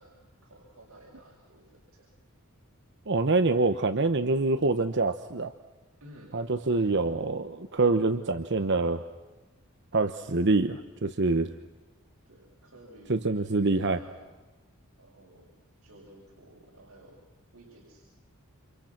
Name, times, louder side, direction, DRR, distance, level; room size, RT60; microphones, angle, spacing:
voice 1, 0.0-2.1 6.0-6.3 6.7-7.0 12.2-14.3 15.0-15.5 15.8-17.2 17.5-18.0, right 1 dB, 80° right, -2 dB, 6.7 m, -53 dB
voice 2, 3.1-5.5 6.3-9.0 9.9-11.5 13.1-14.0, right 3 dB, 55° right, 9 dB, 1.0 m, -25 dB
30.0 x 28.0 x 6.0 m, 1.2 s
head